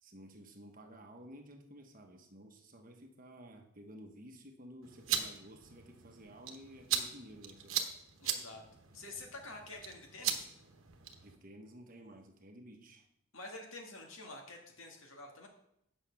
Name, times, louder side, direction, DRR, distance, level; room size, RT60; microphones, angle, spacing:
voice 1, 0.0-7.9 11.2-13.1, equal, 40° right, 4 dB, 1.1 m, -53 dB
sound 1, 4.8-11.4, right 8 dB, 70° right, 1.1 m, -39 dB
voice 2, 8.2-8.6 8.9-10.5 13.3-15.5, left 2 dB, 70° left, 1 dB, 2.0 m, -48 dB
8.8 x 6.3 x 5.8 m, 0.76 s
head